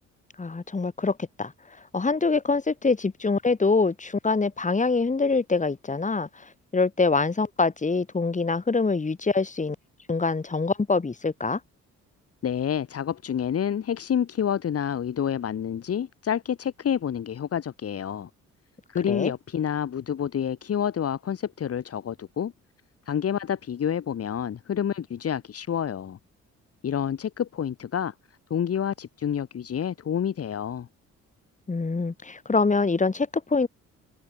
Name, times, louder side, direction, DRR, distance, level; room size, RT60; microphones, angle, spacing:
voice 1, 0.4-1.5 1.9-6.3 6.7-9.8 10.1-11.6 19.1-19.3 31.7-33.7, left 4 dB, 25° left, 4.2 m, -24 dB
voice 2, 12.4-18.3 18.9-22.5 23.1-26.2 26.8-28.1 28.5-30.9, left 8 dB, 50° left, 2.1 m, -28 dB
cardioid pair, 90°, 30 cm